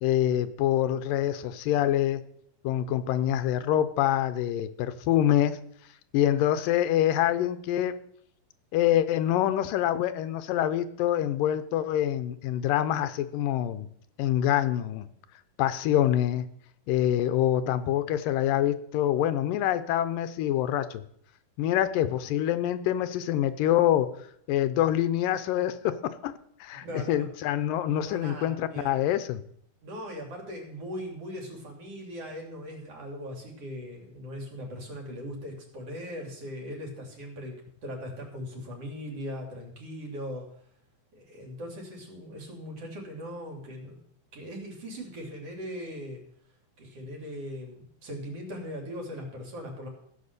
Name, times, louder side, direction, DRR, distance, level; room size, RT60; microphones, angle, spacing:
voice 1, 0.0-2.2 2.6-5.6 6.1-7.9 8.7-13.9 14.2-15.1 15.6-16.5 16.9-21.0 21.6-24.1 24.5-26.3 26.6-29.4, left 11 dB, 90° left, 12 dB, 2.5 m, -25 dB
voice 2, 26.8-27.3 28.0-29.0 29.8-37.5 37.8-40.4 41.1-44.0 44.3-46.2 46.8-49.9, equal, 45° right, 1 dB, 3.7 m, -39 dB
15.5 x 7.7 x 6.7 m, 0.68 s
omnidirectional pair, 3.8 m